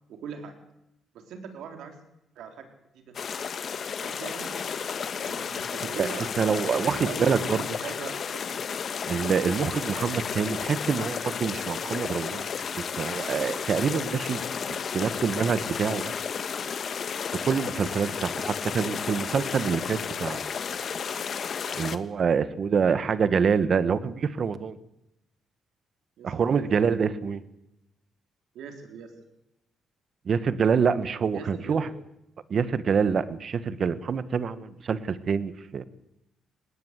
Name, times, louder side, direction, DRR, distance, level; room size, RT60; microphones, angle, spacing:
voice 1, 0.1-0.5 1.1-1.9 2.4-2.7 2.9-3.2 4.0-4.8 5.2-8.5 26.2-26.9 28.5-29.1 31.3-31.9, right 6 dB, 80° right, 5 dB, 4.0 m, -41 dB
sound 1, 3.1-22.0, left 6 dB, 50° left, 1.3 m, -32 dB
voice 2, 6.0-7.6 9.1-12.5 12.7-16.1 17.3-20.5 21.7-24.8 26.2-27.4 30.2-31.9 32.5-35.8, right 6 dB, 50° right, 14 dB, 1.3 m, -26 dB
20.0 x 18.0 x 8.2 m, 0.86 s
cardioid pair, 90°, 0 cm